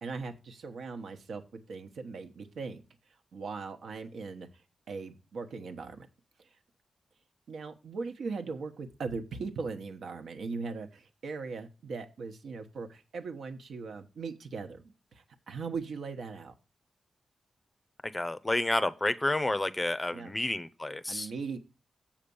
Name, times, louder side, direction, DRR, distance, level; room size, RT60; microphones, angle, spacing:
voice 1, 0.0-2.8 3.3-4.5 4.9-6.1 7.5-16.5 20.1-20.3 21.1-21.6, right 4 dB, 85° right, 1.1 m, -39 dB
voice 2, 18.1-21.3, left 2 dB, 15° left, 0.5 m, -30 dB
7.4 x 5.1 x 6.9 m
wide cardioid pair, 165°, 0 cm